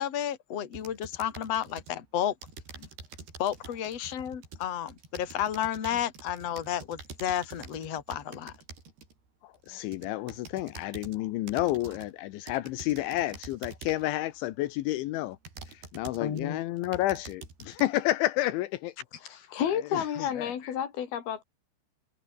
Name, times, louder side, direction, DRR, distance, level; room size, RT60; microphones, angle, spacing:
voice 1, 0.0-2.3 3.4-8.5 16.2-16.6, left 10 dB, 40° left, 3.2 m, -32 dB
sound 1, 0.7-2.0 2.4-9.1 9.7-11.2 11.5-12.1 12.5-14.1 14.7-14.8 15.4-16.4 16.8-17.8, right 4 dB, 60° right, 8.7 m, -47 dB
voice 2, 9.4-15.4 15.7-18.9 19.7-20.5, left 16 dB, 80° left, 3.4 m, -30 dB
voice 3, 19.2-21.4, left 9 dB, 60° left, 4.3 m, -31 dB
omnidirectional pair, 5.3 m